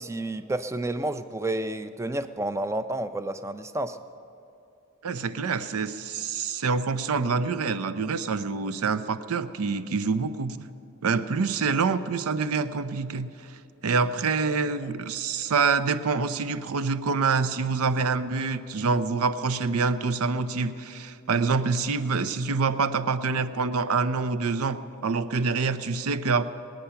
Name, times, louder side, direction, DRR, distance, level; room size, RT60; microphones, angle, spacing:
voice 1, 0.0-4.0, right 1 dB, 15° right, 11 dB, 0.4 m, -30 dB
voice 2, 5.0-10.7 11.0-26.4, right 4 dB, 80° right, 13 dB, 0.6 m, -26 dB
20.0 x 9.0 x 5.7 m, 2.8 s
head